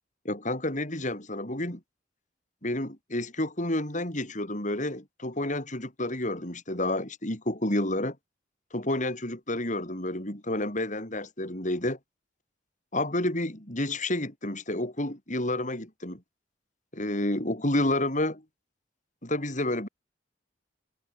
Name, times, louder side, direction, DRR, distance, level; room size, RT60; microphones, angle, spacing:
voice 1, 0.3-1.8 2.6-8.2 8.7-12.0 12.9-16.2 16.9-18.4 19.2-19.9, left 1 dB, 40° left, 6.9 m, -30 dB
head